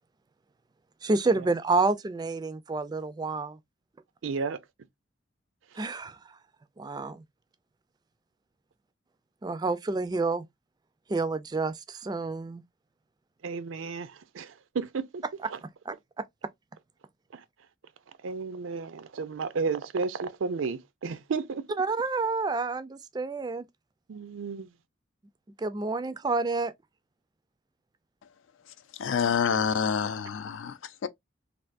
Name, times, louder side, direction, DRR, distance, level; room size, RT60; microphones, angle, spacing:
voice 1, 1.0-3.6 5.8-6.2 6.8-7.2 9.4-10.4 11.1-12.6 15.9-16.0 21.8-23.6 25.6-26.7, right 3 dB, 20° right, 0.3 m, -29 dB
voice 2, 4.2-4.6 13.4-15.2 15.5-15.6 17.3-17.4 18.2-21.6 24.1-24.7, right 4 dB, 85° right, 0.5 m, -33 dB
voice 3, 29.0-31.1, left 6 dB, 80° left, 0.4 m, -27 dB
3.4 x 2.5 x 2.5 m
head